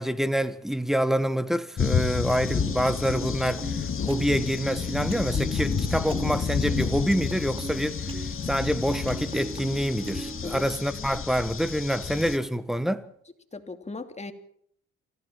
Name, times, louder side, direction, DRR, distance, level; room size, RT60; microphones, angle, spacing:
voice 1, 0.0-13.1, equal, ahead, 1.5 m, -27 dB
sound 1, 1.8-12.4, left 6 dB, 45° left, 2.1 m, -30 dB
Piano, 2.6-10.6, right 3 dB, 20° right, 3.0 m, -39 dB
voice 2, 10.4-11.1 13.5-14.3, left 3 dB, 20° left, 2.8 m, -38 dB
26.0 x 16.0 x 7.3 m
cardioid pair, 90°, 30 cm